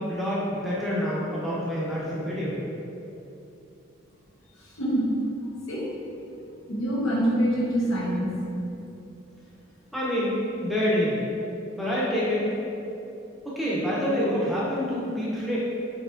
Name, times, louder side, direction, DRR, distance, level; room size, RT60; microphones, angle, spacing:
voice 1, 0.0-2.6 9.9-10.3 10.6-11.2 11.7-12.4 13.4-15.6, equal, ahead, -8 dB, 0.7 m, -27 dB
voice 2, 4.6-5.1 5.7-5.9 6.7-8.4, equal, 90° left, -5 dB, 1.0 m, -25 dB
6.4 x 2.9 x 2.5 m, 2.8 s
head